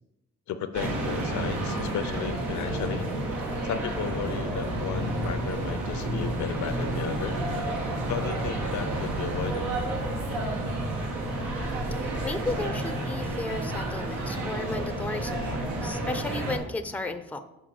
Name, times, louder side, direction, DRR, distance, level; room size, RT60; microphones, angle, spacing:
voice 1, 0.5-3.1 3.6-7.4 8.1-9.7, left 8 dB, 70° left, 11 dB, 0.7 m, -34 dB
sound 1, 0.7-16.6, right 1 dB, 85° right, 1.7 m, -30 dB
voice 2, 12.0-17.4, left 2 dB, 5° left, 9 dB, 0.5 m, -34 dB
6.4 x 4.4 x 5.9 m, 0.90 s
cardioid pair, 90°, 30 cm